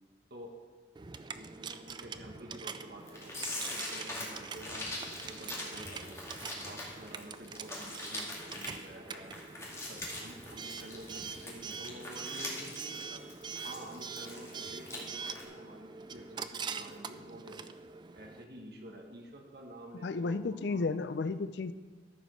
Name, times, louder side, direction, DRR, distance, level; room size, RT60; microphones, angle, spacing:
voice 1, 0.3-0.6 1.3-6.2 6.6-9.4 9.9-13.2 13.6-17.7 18.1-20.9, right 1 dB, 60° right, 1 dB, 1.5 m, -49 dB
Coin (dropping) / Alarm, 1.0-18.4, right 5 dB, 25° right, 0.3 m, -44 dB
sound 1, 3.1-15.0 15.3-15.4, left 1 dB, 15° left, 1.9 m, -42 dB
voice 2, 20.0-21.7, left 4 dB, 65° left, 14 dB, 0.4 m, -33 dB
13.5 x 5.2 x 6.3 m, 1.4 s
head